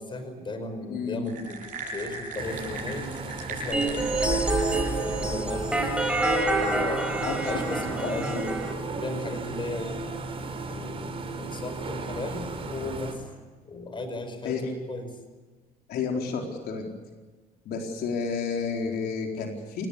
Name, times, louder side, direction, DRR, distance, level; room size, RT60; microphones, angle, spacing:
voice 1, 0.0-1.6 1.9-3.1 3.5-4.5 5.0-5.9 6.5-8.6 9.0-10.0 10.7-13.2 13.7-15.2, left 2 dB, 30° left, 8 dB, 5.2 m, -35 dB
voice 2, 0.9-1.3 7.2-7.5 8.3-8.4 14.4-14.7 15.9-16.8 17.6-19.9, left 5 dB, 70° left, 1 dB, 4.5 m, -31 dB
sound 1, 1.3-5.3, right 3 dB, 50° right, 7.8 m, -39 dB
sound 2, 2.4-13.1, right 3 dB, 35° right, 4.9 m, -36 dB
sound 3, 3.7-8.7, right 2 dB, 5° right, 5.0 m, -27 dB
28.0 x 18.5 x 8.7 m, 1.3 s
cardioid pair, 110°, 17 cm